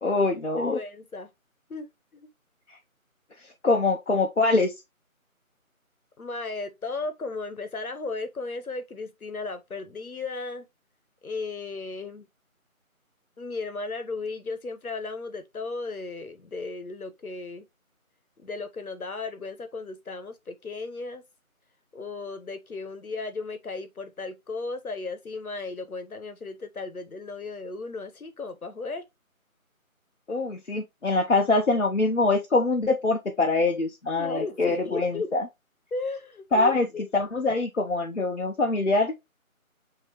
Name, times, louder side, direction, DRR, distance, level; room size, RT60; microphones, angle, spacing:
voice 1, 0.0-0.8 3.6-4.7 30.3-35.4 36.5-36.9 37.1-39.1, left 3 dB, 60° left, 0.6 m, -24 dB
voice 2, 0.6-1.3 1.7-2.3 6.2-10.6 11.2-12.3 13.4-17.7 18.4-21.2 21.9-29.1 34.2-35.4 35.9-37.0, left 3 dB, 80° left, 1.0 m, -35 dB
6.1 x 2.8 x 2.9 m
figure-of-eight pair, 175°, 43 cm